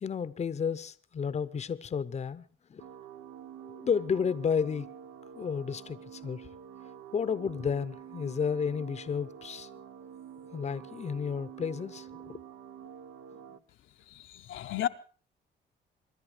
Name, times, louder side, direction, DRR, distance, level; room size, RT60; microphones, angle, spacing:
voice 1, 0.0-2.8 3.6-4.9 5.3-6.5 7.1-9.7 10.5-12.4, left 6 dB, 35° left, 0.7 m, -32 dB
sound 1, 2.8-13.6, right 9 dB, 80° right, 0.8 m, -48 dB
voice 2, 14.0-14.9, left 11 dB, 75° left, 0.8 m, -34 dB
25.0 x 10.5 x 4.9 m
cardioid pair, 90°, 20 cm